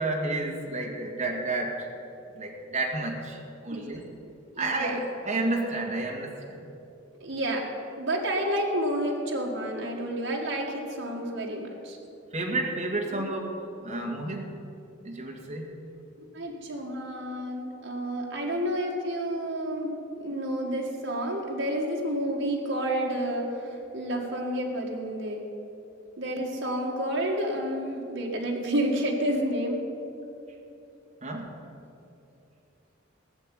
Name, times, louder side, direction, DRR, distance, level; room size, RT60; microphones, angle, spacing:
voice 1, 0.0-1.9 2.4-4.0 4.6-6.6 12.3-13.4 13.8-14.5 15.0-15.7 31.2-31.5, right 2 dB, 35° right, -1 dB, 2.1 m, -31 dB
voice 2, 4.5-5.0 7.2-7.6 8.0-12.0 13.1-13.2 16.3-25.5 26.2-29.9, right 1 dB, 65° right, -1 dB, 2.0 m, -30 dB
17.0 x 6.8 x 9.0 m, 2.8 s
head